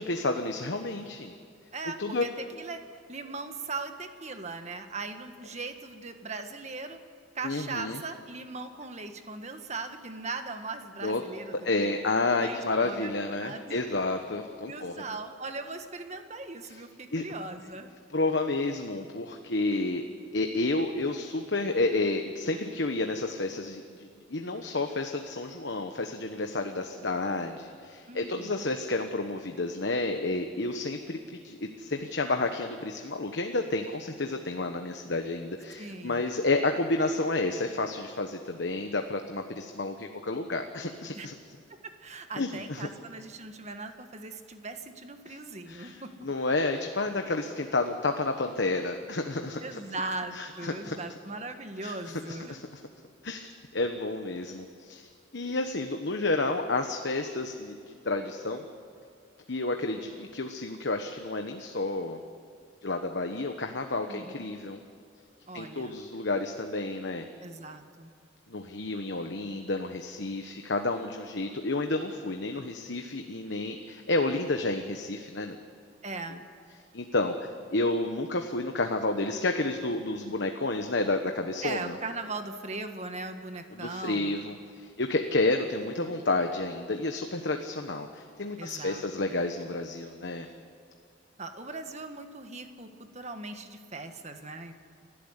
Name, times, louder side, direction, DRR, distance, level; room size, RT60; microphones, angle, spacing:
voice 1, 0.0-1.3 2.0-2.2 7.4-8.0 11.0-11.2 11.6-15.0 16.7-16.8 17.1-17.3 18.1-20.0 20.3-41.3 42.4-42.9 45.3-45.4 45.7-49.8 50.3-50.9 51.8-52.7 53.2-58.6 59.5-62.2 62.8-64.8 65.5-67.2 68.5-75.6 76.3-76.4 76.9-82.0 83.8-90.5, left 2 dB, 65° left, 5 dB, 1.2 m, -30 dB
voice 2, 1.7-2.8 3.1-7.0 7.3-11.9 12.4-12.6 12.8-13.1 13.4-13.8 14.6-17.9 28.1-28.7 35.8-36.2 41.1-41.3 41.7-46.1 49.6-52.5 64.1-64.4 65.5-66.0 67.4-68.1 76.0-76.4 81.6-84.5 88.6-89.4 91.4-94.8, right 3 dB, 35° right, 7 dB, 1.6 m, -39 dB
29.5 x 12.5 x 8.3 m, 2.3 s
head